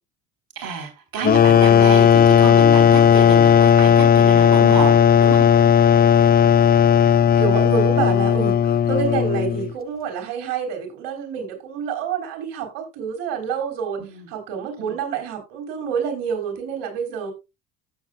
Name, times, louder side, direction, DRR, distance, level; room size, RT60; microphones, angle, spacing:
voice 1, 0.6-5.5 14.0-14.3 14.8-14.9, right 6 dB, 50° right, 3.9 m, -29 dB
sound 1, 1.2-9.7, left 8 dB, 20° left, 0.4 m, -15 dB
voice 2, 7.4-14.0 14.3-17.3, right 7 dB, 65° right, 4.0 m, -27 dB
15.0 x 7.3 x 2.3 m
hypercardioid pair, 60°, 45 cm